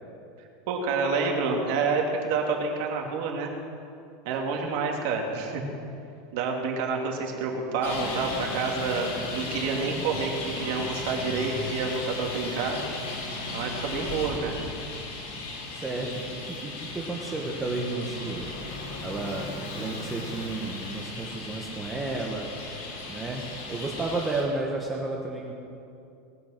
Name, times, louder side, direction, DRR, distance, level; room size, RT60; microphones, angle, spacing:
voice 1, 0.7-3.5 4.2-5.6 6.3-12.8 13.5-14.6, right 4 dB, 55° right, 1 dB, 2.5 m, -28 dB
Traffic noise roadway noise, 7.8-24.4, left 2 dB, 85° left, 4.5 m, -36 dB
voice 2, 15.7-18.5 19.0-19.5 19.7-22.5 23.1-25.5, right 3 dB, 10° right, -1 dB, 1.2 m, -32 dB
20.0 x 9.4 x 6.6 m, 2.6 s
supercardioid pair, 170°, 0 cm